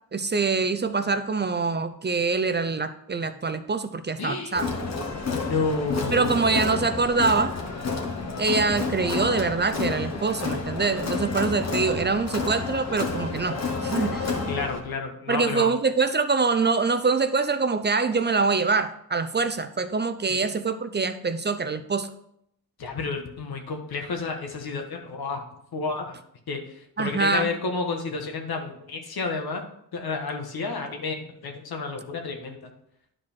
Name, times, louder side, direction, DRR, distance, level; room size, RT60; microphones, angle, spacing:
voice 1, 0.1-4.6 6.1-7.5 8.4-13.6 13.8-14.3 15.3-22.1 27.0-27.5, right 4 dB, 30° right, 10 dB, 0.5 m, -24 dB
voice 2, 4.2-4.6 5.3-6.5 14.5-15.7 20.3-20.5 22.8-25.4 25.7-26.2 26.5-29.6 29.9-32.7, left 4 dB, 75° left, 3 dB, 1.5 m, -31 dB
Crowd, 4.6-14.8, left 4 dB, 45° left, 1.5 m, -30 dB
10.0 x 4.9 x 4.5 m, 0.73 s
cardioid pair, 75°, 37 cm